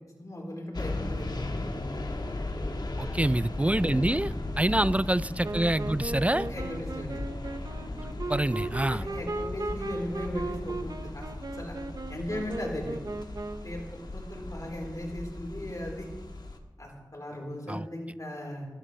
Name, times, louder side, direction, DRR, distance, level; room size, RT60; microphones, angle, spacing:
voice 1, 0.2-1.6 3.0-3.3 4.7-4.8 6.5-7.2 8.9-11.3 11.5-11.8 12.1-13.0 13.6-13.8 14.1-16.0 16.8-18.7, left 1 dB, 45° left, -1 dB, 4.2 m, -37 dB
sound 1, 0.7-16.6, left 2 dB, 60° left, 1.6 m, -37 dB
voice 2, 3.0-6.5 8.3-9.0 17.7-17.8, right 1 dB, 15° right, 16 dB, 0.5 m, -26 dB
Wind instrument woodwind instrument, 5.4-13.8, right 2 dB, 50° right, 0.8 m, -37 dB
24.0 x 13.5 x 3.3 m, 1.2 s
wide cardioid pair, 55°, 8 cm